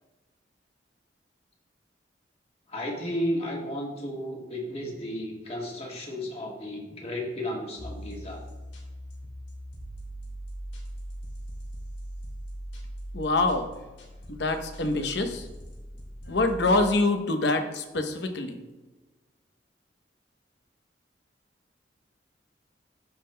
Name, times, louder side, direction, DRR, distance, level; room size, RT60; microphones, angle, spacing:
voice 1, 2.7-8.4, equal, 35° left, -1 dB, 1.5 m, -33 dB
sound 1, 7.8-16.9, equal, 85° left, 1.8 m, -40 dB
voice 2, 13.1-13.7 14.3-15.5 16.3-18.6, left 2 dB, 70° left, 6 dB, 0.8 m, -25 dB
14.0 x 5.6 x 2.2 m, 1.1 s
head